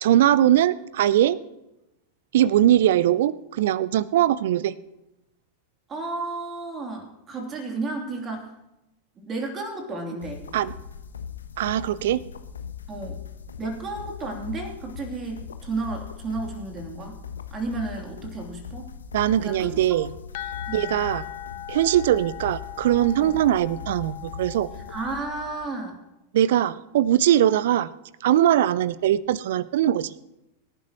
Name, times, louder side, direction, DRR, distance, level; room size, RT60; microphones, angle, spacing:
voice 1, 0.0-1.4 2.3-4.7 10.5-10.7 11.6-12.2 19.1-20.1 20.7-21.2 21.7-24.7 26.3-27.9 28.2-30.1, right 12 dB, 55° right, 20 dB, 0.6 m, -21 dB
voice 2, 5.9-8.5 9.2-10.4 12.9-13.2 13.6-17.2 17.5-18.9 19.4-19.8 20.7-20.9 23.2-23.4 24.9-26.0, right 3 dB, 25° right, 2 dB, 3.1 m, -32 dB
sound 1, 10.2-25.7, left 7 dB, 70° left, 1.0 m, -40 dB
sound 2, 20.3-25.9, left 13 dB, 50° left, 0.5 m, -39 dB
24.5 x 11.5 x 3.1 m, 0.93 s
figure-of-eight pair, 90°, 0 cm